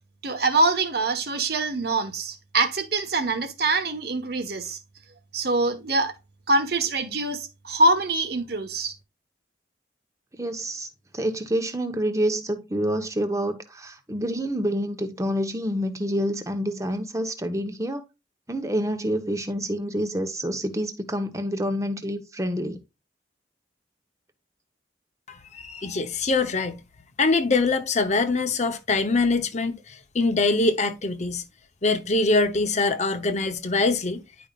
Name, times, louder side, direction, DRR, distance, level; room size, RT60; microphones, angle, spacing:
voice 1, 0.2-4.8 5.3-6.1 6.5-8.9, right 2 dB, 55° right, 1.3 m, -24 dB
voice 2, 10.4-10.9 11.1-18.0 18.5-22.8, equal, 15° right, 1.0 m, -27 dB
voice 3, 25.3-26.8 27.2-31.4 31.8-34.2, left 3 dB, 40° left, 0.8 m, -23 dB
10.5 x 5.2 x 2.4 m
head